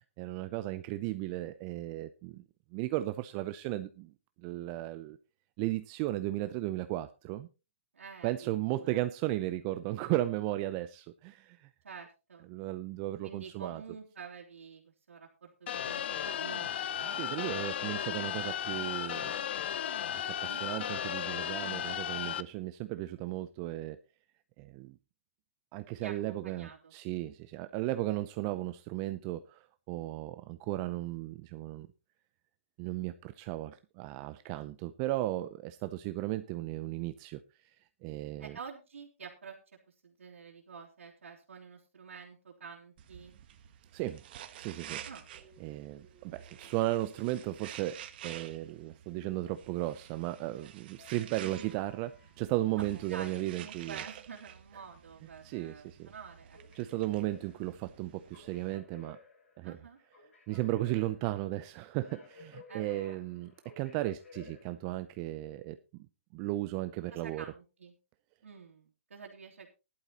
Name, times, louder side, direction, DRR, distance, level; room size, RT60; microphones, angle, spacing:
voice 1, 0.2-2.4 2.7-4.1 4.4-5.2 5.6-7.5 8.2-11.7 12.5-13.8 17.1-19.3 20.0-24.0 24.6-25.0 25.7-31.9 32.8-37.4 38.0-38.6 43.9-44.2 44.6-45.0 45.6-54.0 55.4-56.1 56.7-59.2 59.6-59.8 60.5-65.8 66.3-67.4, right 16 dB, 30° right, 0.6 m, -35 dB
voice 2, 7.9-9.0 11.8-12.5 13.2-17.5 20.5-20.8 26.0-26.9 38.4-39.6 40.0-43.3 45.0-45.2 51.4-51.7 52.8-56.6 59.6-60.0 62.7-63.2 67.1-67.9 68.4-69.7, right 6 dB, 80° right, 2.8 m, -49 dB
sound 1, 15.7-22.4, left 10 dB, 55° left, 0.7 m, -35 dB
sound 2, 43.0-58.8, right 10 dB, 45° right, 1.2 m, -50 dB
sound 3, 45.3-48.2 51.0-52.8 56.3-65.2, left 3 dB, 85° left, 7.5 m, -57 dB
15.5 x 11.5 x 2.9 m
hypercardioid pair, 145°, 7 cm